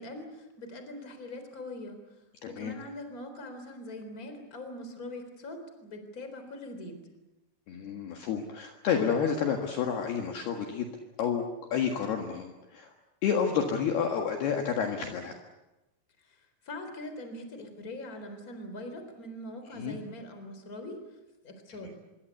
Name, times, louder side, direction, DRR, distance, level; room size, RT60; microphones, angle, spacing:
voice 1, 0.0-2.0 2.5-7.0 16.2-21.0 21.4-21.9, left 1 dB, 20° left, 7 dB, 3.6 m, -42 dB
voice 2, 2.4-2.7 7.7-10.9 11.2-11.4 11.7-12.9 13.2-15.3 19.7-20.0, left 7 dB, 65° left, 3 dB, 3.3 m, -30 dB
25.5 x 23.5 x 8.3 m, 1.0 s
omnidirectional pair, 5.6 m